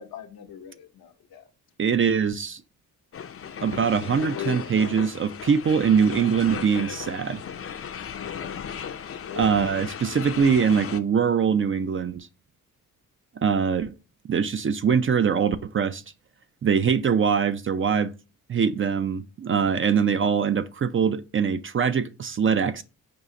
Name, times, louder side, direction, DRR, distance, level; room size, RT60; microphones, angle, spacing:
voice 1, 0.0-1.4 4.2-4.7 8.1-8.5 9.0-9.5, left 10 dB, 80° left, 0.8 m, -39 dB
voice 2, 1.8-2.6 3.6-7.4 9.4-12.3 13.4-13.9 14.3-16.0 16.6-18.1 18.5-22.8, right 6 dB, 35° right, 0.4 m, -23 dB
sound 1, 3.1-11.0, left 7 dB, 40° left, 0.5 m, -36 dB
5.4 x 2.4 x 3.7 m
cardioid pair, 60°, 35 cm